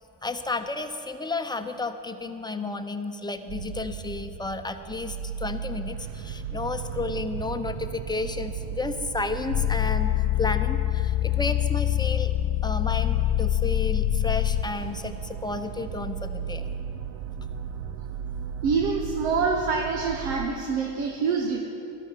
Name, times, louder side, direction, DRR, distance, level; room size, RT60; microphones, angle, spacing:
voice 1, 0.2-12.3 12.6-16.7, left 3 dB, 10° left, 7 dB, 0.7 m, -32 dB
sound 1, 3.5-20.5, right 8 dB, 65° right, 0.7 m, -36 dB
sound 2, 9.5-14.8, left 15 dB, 65° left, 0.6 m, -25 dB
voice 2, 18.6-21.6, right 5 dB, 85° right, 2 dB, 1.1 m, -26 dB
13.5 x 11.5 x 4.6 m, 2.8 s
supercardioid pair, 75°, 48 cm